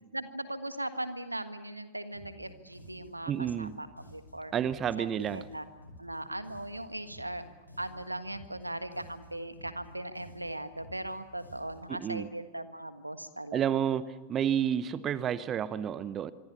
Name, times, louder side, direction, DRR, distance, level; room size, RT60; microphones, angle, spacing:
voice 1, 0.1-3.3 3.6-4.5 5.0-5.7 6.0-7.4 7.8-13.8, right 1 dB, 85° right, 11 dB, 1.6 m, -39 dB
sound 1, 2.1-12.0, left 1 dB, 85° left, 5.6 m, -53 dB
voice 2, 3.3-3.8 4.5-5.5 11.9-12.3 13.5-16.3, right 9 dB, 30° right, 17 dB, 0.9 m, -30 dB
25.5 x 25.0 x 7.1 m, 1.2 s
figure-of-eight pair, 90°, 0 cm